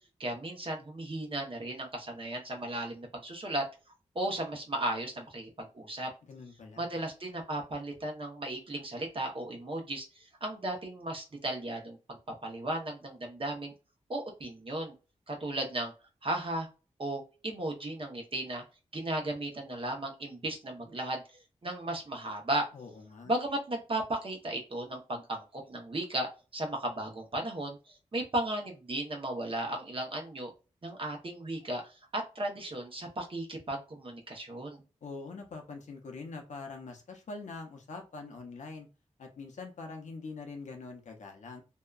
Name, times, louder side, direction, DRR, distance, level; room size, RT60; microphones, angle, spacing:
voice 1, 0.2-3.6 4.1-6.1 6.8-13.7 14.1-14.9 15.3-15.9 16.2-16.7 17.0-18.6 18.9-22.7 23.3-30.5 30.8-34.8, right 1 dB, 45° right, 1 dB, 0.9 m, -35 dB
voice 2, 6.3-6.9 22.7-23.3 35.0-38.9 39.2-41.6, left 3 dB, 75° left, 3 dB, 0.7 m, -44 dB
2.7 x 2.3 x 2.3 m, 0.31 s
cardioid pair, 65°, 12 cm